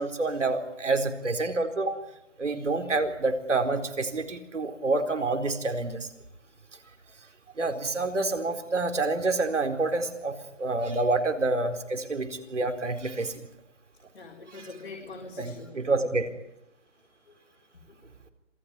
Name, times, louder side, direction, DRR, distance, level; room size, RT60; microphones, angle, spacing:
voice 1, 0.0-2.0 2.4-6.0 7.6-10.3 10.6-13.4 15.4-16.2, right 3 dB, 80° right, 6 dB, 4.3 m, -28 dB
voice 2, 14.1-15.9 17.3-17.4 17.9-18.1, left 3 dB, 55° left, 0 dB, 4.6 m, -44 dB
27.0 x 18.0 x 9.6 m, 0.87 s
hypercardioid pair, 170°, 36 cm